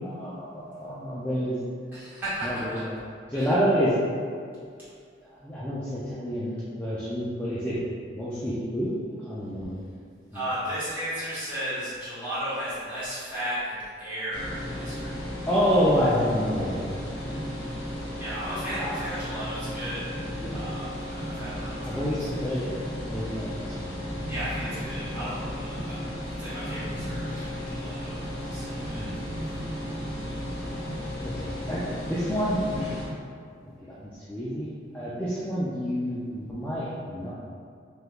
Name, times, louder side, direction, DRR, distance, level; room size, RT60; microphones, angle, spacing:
voice 1, 0.0-1.6 2.4-2.6 2.9-3.0 3.3-4.0 5.4-7.8 8.1-8.9 9.2-9.7 10.3-10.4 15.5-16.9 17.3-17.5 18.7-18.9 20.3-20.6 21.8-22.7 23.1-23.9 29.0-29.1 31.2-32.9 33.6-37.3, equal, 10° left, -10 dB, 0.3 m, -28 dB
voice 2, 1.9-2.9 3.3-3.6 10.3-15.2 17.3-17.9 18.2-20.1 20.5-22.3 24.3-28.2 28.5-29.2, equal, 10° right, -15 dB, 1.3 m, -35 dB
sound 1, 14.3-33.1, equal, 75° left, 0.8 m, -34 dB
3.4 x 2.9 x 2.3 m, 2.2 s
head